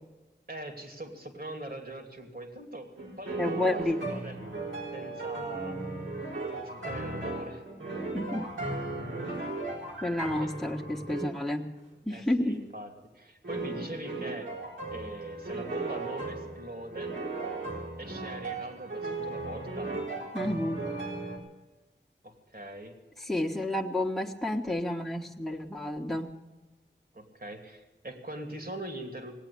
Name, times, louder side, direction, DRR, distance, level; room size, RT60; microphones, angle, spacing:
voice 1, 0.5-2.9 3.2-4.4 4.9-5.8 6.5-7.6 10.4-10.5 12.1-14.5 14.9-17.2 18.0-19.9 22.2-22.9 27.1-29.3, right 1 dB, 55° right, 3 dB, 2.8 m, -42 dB
sound 1, 3.0-11.4 13.4-21.4, right 3 dB, 85° right, 3.9 m, -36 dB
voice 2, 3.4-4.0 8.1-8.5 10.0-11.7 12.0-12.6 20.3-20.8 23.2-26.3, left 1 dB, ahead, -1 dB, 1.5 m, -30 dB
18.5 x 8.8 x 8.6 m, 1.2 s
wide cardioid pair, 45°, 19 cm